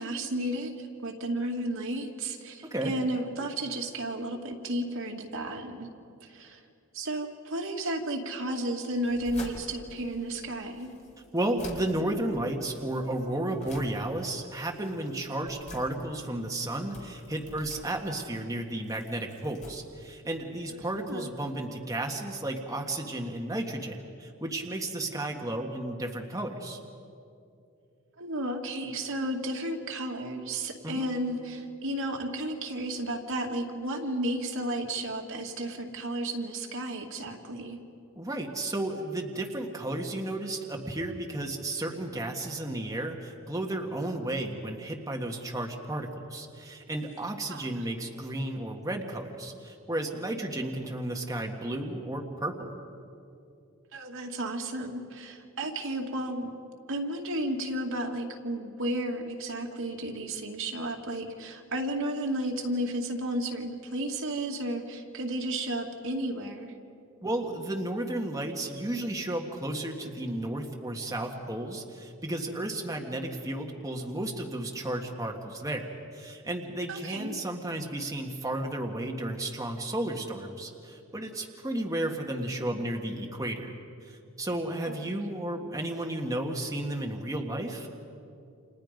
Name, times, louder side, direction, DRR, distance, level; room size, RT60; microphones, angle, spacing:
voice 1, 0.0-5.9 6.2-6.6 6.9-10.9 20.7-21.3 28.2-37.8 47.5-47.6 53.9-56.5 56.9-66.7 76.9-77.4 84.8-85.1, right 1 dB, 65° right, 1 dB, 2.4 m, -33 dB
voice 2, 2.6-3.0 11.3-26.8 30.8-31.1 38.1-52.7 67.2-83.7 84.0-87.9, right 1 dB, 15° right, 1 dB, 1.7 m, -33 dB
sound 1, 8.9-20.7, left 1 dB, 35° left, 4.1 m, -49 dB
30.0 x 27.5 x 5.2 m, 2.5 s
head